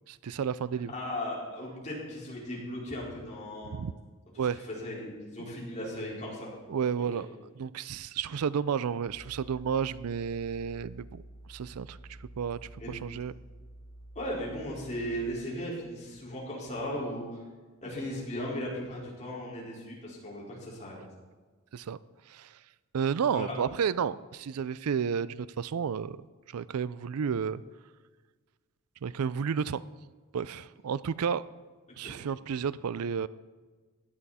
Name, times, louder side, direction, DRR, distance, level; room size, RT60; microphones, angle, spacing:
voice 1, 0.1-0.9 3.7-3.9 4.4-4.6 6.7-7.3 7.6-11.2 11.5-13.3 21.7-22.0 22.3-22.6 22.9-27.6 29.0-29.8 30.3-31.4 32.0-33.3, right 7 dB, 75° right, 18 dB, 0.4 m, -32 dB
voice 2, 0.9-3.7 4.7-6.5 7.1-7.2 12.8-13.0 14.1-17.2 17.8-21.0 23.3-23.5 32.0-32.1, equal, 35° left, -5 dB, 4.6 m, -37 dB
sound 1, 9.1-15.3, right 1 dB, 50° right, 3.2 m, -50 dB
17.0 x 11.5 x 4.2 m, 1.4 s
head